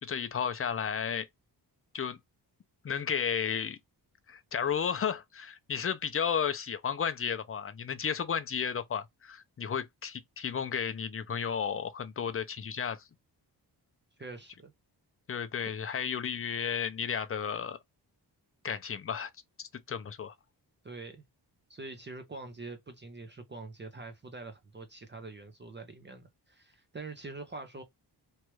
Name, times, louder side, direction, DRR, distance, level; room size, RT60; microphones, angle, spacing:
voice 1, 0.0-1.3 1.9-2.2 2.8-3.8 4.3-13.0 15.3-17.8 18.6-19.3 19.6-20.3, left 7 dB, 35° left, 0.4 m, -33 dB
voice 2, 14.2-14.7 20.8-21.2 21.7-27.8, right 3 dB, 25° right, 0.6 m, -44 dB
3.1 x 2.4 x 3.0 m
wide cardioid pair, 135°, 42 cm